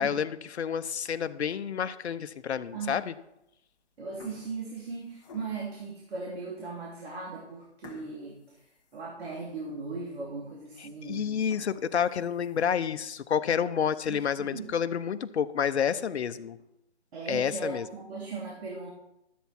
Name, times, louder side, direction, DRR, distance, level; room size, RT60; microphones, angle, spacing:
voice 1, 0.0-3.1 11.1-16.6 17.3-17.9, left 7 dB, 70° left, 11 dB, 0.8 m, -29 dB
sound 1, 1.4-1.9 2.5-2.6 3.4-3.7 4.0-5.8 6.4-6.5 6.9-7.0 7.8-9.6 10.0-10.1 10.6-10.7 11.3-12.9 13.4-13.5 13.9-14.0 14.3-14.4 14.7-14.8 15.7-16.3, left 4 dB, 30° left, 1.4 m, -54 dB
voice 2, 4.0-11.3 14.1-14.7 17.1-18.9, right 4 dB, 60° right, -3 dB, 3.2 m, -38 dB
13.0 x 8.3 x 4.4 m, 0.83 s
hypercardioid pair, 150°, 35 cm